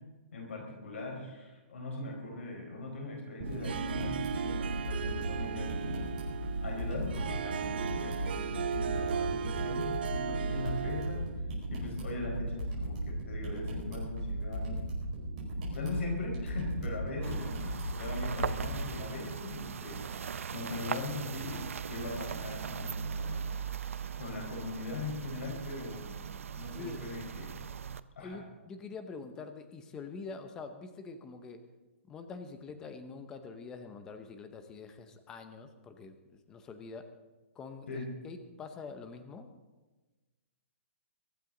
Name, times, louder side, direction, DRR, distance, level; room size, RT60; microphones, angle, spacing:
voice 1, 0.3-11.3 11.7-14.9 15.7-20.2 20.5-21.6 21.9-23.4 24.2-26.2 26.5-27.6 28.2-28.4 37.9-38.1, left 2 dB, 70° left, 1 dB, 4.7 m, -40 dB
sound 1, 3.4-18.8, right 1 dB, 30° right, 5.0 m, -36 dB
Harp, 3.4-11.3, right 8 dB, 50° right, 0.7 m, -37 dB
sound 2, 17.2-28.0, right 7 dB, 90° right, 0.6 m, -39 dB
voice 2, 28.2-31.7 32.1-37.1 37.6-39.5, left 4 dB, 10° left, 9 dB, 0.7 m, -45 dB
23.0 x 12.0 x 3.8 m, 1.2 s
hypercardioid pair, 175°, 7 cm